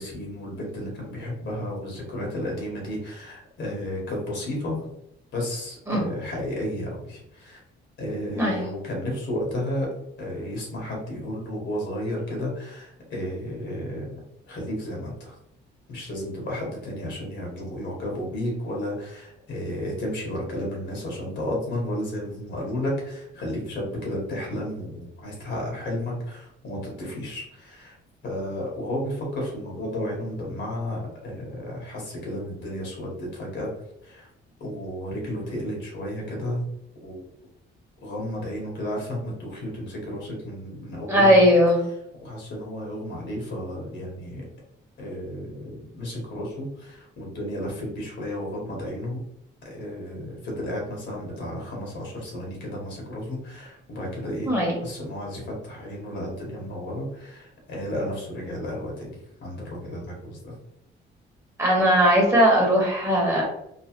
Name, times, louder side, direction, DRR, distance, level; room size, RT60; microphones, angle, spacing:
voice 1, 0.0-4.8 5.3-7.6 8.0-9.9 10.2-14.1 14.5-15.3 15.9-27.9 28.2-33.7 34.0-34.3 34.6-36.6 37.0-37.2 38.0-41.6 42.2-44.4 45.0-49.2 49.6-54.5 54.8-60.5, left 1 dB, 65° left, -2 dB, 1.5 m, -32 dB
voice 2, 41.1-41.8 54.5-54.7 61.6-63.4, equal, 15° right, -3 dB, 1.2 m, -18 dB
3.1 x 2.2 x 2.9 m, 0.79 s
cardioid pair, 90°, 20 cm